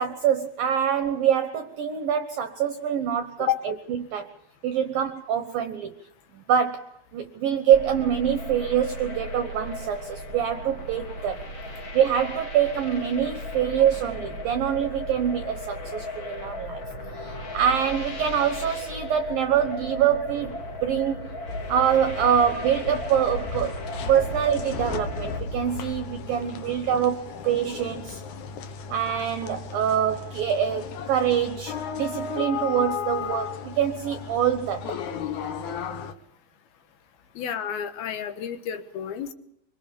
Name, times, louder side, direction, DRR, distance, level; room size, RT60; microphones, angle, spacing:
voice 1, 0.0-4.3 4.6-5.9 6.3-11.5 11.9-16.8 17.1-21.3 21.7-23.8 24.1-28.2 28.9-34.9, right 9 dB, 75° right, 8 dB, 2.1 m, -25 dB
sound 1, 7.7-25.4, left 1 dB, 35° left, 2.1 m, -36 dB
sound 2, 21.5-36.1, left 6 dB, 85° left, 1.7 m, -35 dB
voice 2, 37.4-39.3, left 9 dB, 65° left, 8 dB, 2.9 m, -30 dB
24.5 x 24.5 x 5.2 m, 0.73 s
omnidirectional pair, 5.6 m